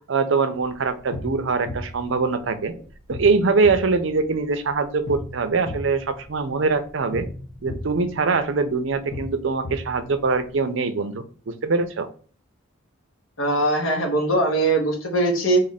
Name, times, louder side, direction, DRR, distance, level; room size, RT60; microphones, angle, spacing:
voice 1, 0.1-2.7 3.1-7.3 7.6-12.1, right 4 dB, 65° right, 9 dB, 0.5 m, -23 dB
sound 1, 0.6-10.6, left 1 dB, 50° left, 0.8 m, -37 dB
voice 2, 13.4-15.6, right 2 dB, 80° left, 1 dB, 1.3 m, -21 dB
3.7 x 2.5 x 4.0 m, 0.42 s
head